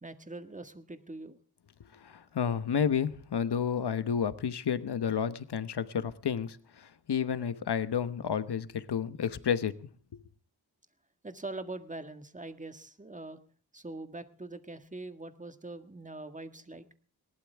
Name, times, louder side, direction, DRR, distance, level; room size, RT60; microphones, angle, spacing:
voice 1, 0.0-1.4 11.2-13.4 13.7-16.9, right 2 dB, 20° right, 1.7 m, -43 dB
voice 2, 2.0-9.7, left 7 dB, 90° left, 1.1 m, -31 dB
20.5 x 18.5 x 3.5 m
wide cardioid pair, 110°, 39 cm